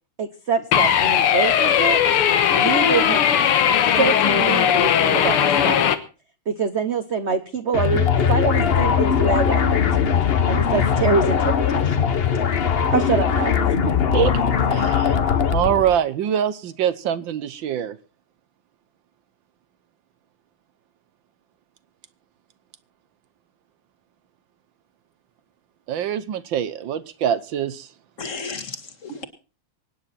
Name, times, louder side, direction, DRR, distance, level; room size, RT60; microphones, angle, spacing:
voice 1, 0.2-2.0 2.5-3.2 3.8-5.9 6.5-9.6 9.9-10.1 10.5-12.1 12.4-12.5 12.9-13.8, right 5 dB, 50° right, 0.9 m, -25 dB
sound 1, 0.7-6.0, left 9 dB, 90° left, 2.1 m, -18 dB
sound 2, 7.7-16.0, left 7 dB, 60° left, 0.6 m, -20 dB
voice 2, 14.7-15.2 15.5-18.0 25.9-27.9, right 9 dB, 65° right, 1.5 m, -24 dB
voice 3, 28.2-29.2, left 4 dB, 35° left, 2.0 m, -33 dB
24.0 x 9.5 x 4.2 m
omnidirectional pair, 2.4 m